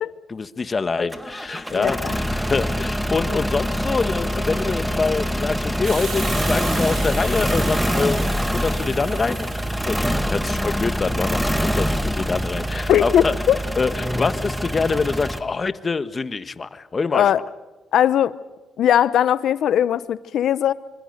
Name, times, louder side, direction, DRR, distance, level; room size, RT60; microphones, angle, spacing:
voice 1, 0.3-8.2 8.5-9.5 9.9-13.3 13.8-17.3, left 4 dB, 35° left, 11 dB, 1.3 m, -25 dB
sound 1, 1.1-15.4, equal, 5° right, 1.9 m, -24 dB
voice 2, 1.7-2.2 12.9-13.6 17.1-17.4 17.9-18.3 18.8-20.7, left 10 dB, 70° left, 15 dB, 0.9 m, -19 dB
Hiss, 5.8-11.2, right 6 dB, 70° right, 6.1 m, -37 dB
26.0 x 25.5 x 6.7 m, 1.2 s
cardioid pair, 90°, 0 cm